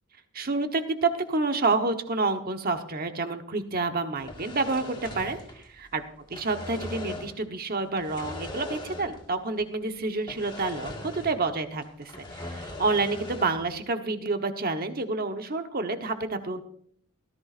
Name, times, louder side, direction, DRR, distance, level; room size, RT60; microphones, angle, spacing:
voice 1, 0.3-6.0 6.3-16.6, right 3 dB, 40° right, 6 dB, 1.1 m, -29 dB
sound 1, 4.2-5.9 6.2-7.4 7.9-9.3 9.6-9.7 10.3-11.5 11.8-13.7, left 2 dB, 20° left, 1.8 m, -40 dB
17.5 x 14.0 x 2.6 m, 0.62 s
head